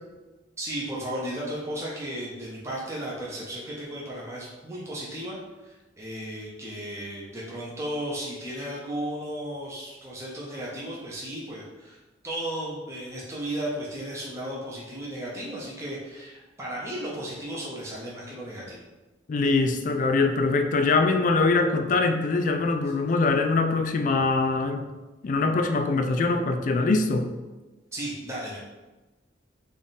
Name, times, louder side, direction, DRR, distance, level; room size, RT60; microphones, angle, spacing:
voice 1, 0.6-12.0 12.2-18.8 27.9-28.6, right 1 dB, 15° right, -5 dB, 0.6 m, -35 dB
voice 2, 19.3-24.8 25.2-27.3, left 3 dB, 45° left, 7 dB, 0.3 m, -23 dB
3.5 x 2.4 x 4.0 m, 1.1 s
head